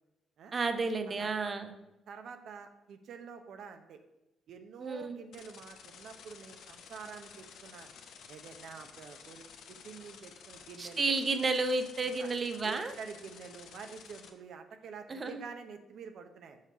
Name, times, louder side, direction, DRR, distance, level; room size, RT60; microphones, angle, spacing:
voice 1, 0.5-1.7 4.8-5.2 10.8-12.9 15.1-15.3, right 3 dB, 35° right, 8 dB, 0.7 m, -31 dB
voice 2, 2.1-4.0 4.5-7.9 8.3-11.1 12.2-12.3 12.6-16.6, right 6 dB, 70° right, 7 dB, 0.7 m, -48 dB
sound 1, 5.3-14.3, left 7 dB, 80° left, 0.7 m, -52 dB
5.7 x 4.6 x 5.9 m, 0.95 s
cardioid pair, 90°, 0 cm